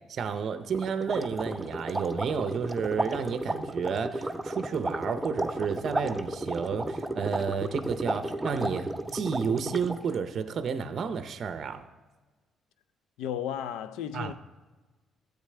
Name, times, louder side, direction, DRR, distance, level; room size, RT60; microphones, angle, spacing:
voice 1, 0.1-11.9 14.1-14.3, right 6 dB, 60° right, 0.6 m, -31 dB
sound 1, 0.7-10.2, right 1 dB, 15° right, 0.6 m, -33 dB
voice 2, 13.2-14.3, left 9 dB, 85° left, 0.4 m, -34 dB
12.5 x 8.0 x 3.3 m
supercardioid pair, 70°, 0 cm